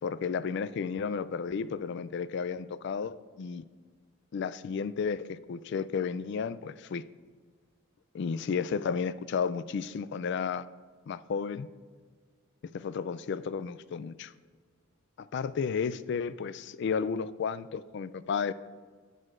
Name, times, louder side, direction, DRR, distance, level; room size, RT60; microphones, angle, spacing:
voice 1, 0.0-3.6 4.3-7.0 8.1-10.7 11.1-11.7 12.7-14.3 15.3-18.5, left 6 dB, 60° left, 16 dB, 0.3 m, -32 dB
16.5 x 6.4 x 2.5 m, 1.5 s
head